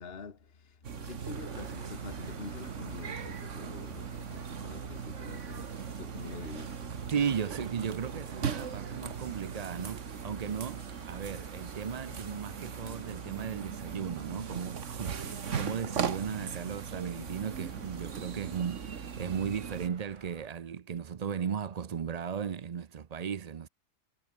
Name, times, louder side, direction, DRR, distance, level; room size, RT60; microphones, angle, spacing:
voice 1, 0.0-6.9, left 5 dB, 55° left, 1.8 m, -46 dB
sound 1, 0.8-19.9, right 7 dB, 80° right, 1.7 m, -39 dB
sound 2, 1.3-20.5, right 2 dB, 25° right, 1.7 m, -53 dB
voice 2, 7.1-23.7, right 7 dB, 40° right, 0.6 m, -36 dB
omnidirectional pair, 1.3 m